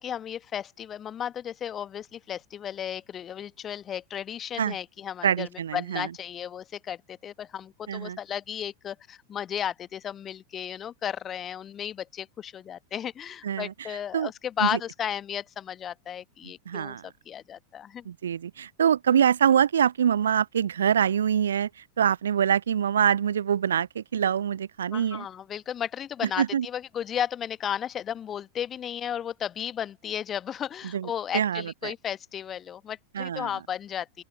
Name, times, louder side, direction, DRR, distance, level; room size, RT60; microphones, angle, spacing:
voice 1, 0.0-17.0 17.3-18.0 24.9-34.2, left 9 dB, 25° left, 1.3 m, -34 dB
voice 2, 5.2-6.1 7.9-8.2 13.4-13.7 14.1-14.3 14.6-14.8 16.7-17.0 18.1-21.7 22.0-25.3 26.4-26.7 30.9-31.1 31.3-31.9 33.1-33.5, right 8 dB, 65° right, 0.6 m, -24 dB
open air
figure-of-eight pair, 90°, 0 cm